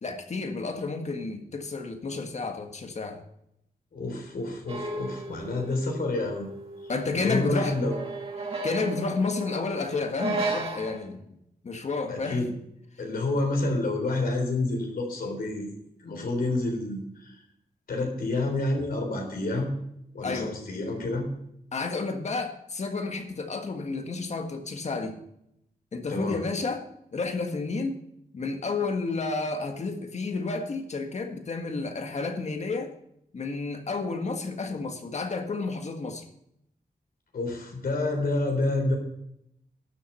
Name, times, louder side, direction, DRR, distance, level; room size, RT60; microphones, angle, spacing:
voice 1, 0.0-3.2 6.9-7.7 8.6-11.2 11.6-12.4 20.2-20.6 21.7-25.2 25.9-26.9 27.1-28.0 28.3-32.9 33.3-36.2, left 3 dB, 50° left, 5 dB, 1.6 m, -31 dB
voice 2, 3.9-6.5 7.1-8.0 12.1-12.5 13.0-15.7 16.0-17.4 17.9-19.7 20.1-21.3 26.1-26.4 37.3-39.0, left 2 dB, 75° left, 2 dB, 3.7 m, -28 dB
sound 1, 4.7-11.0, right 2 dB, 40° right, 2.4 m, -35 dB
12.0 x 7.4 x 5.6 m, 0.76 s
wide cardioid pair, 145°, 15 cm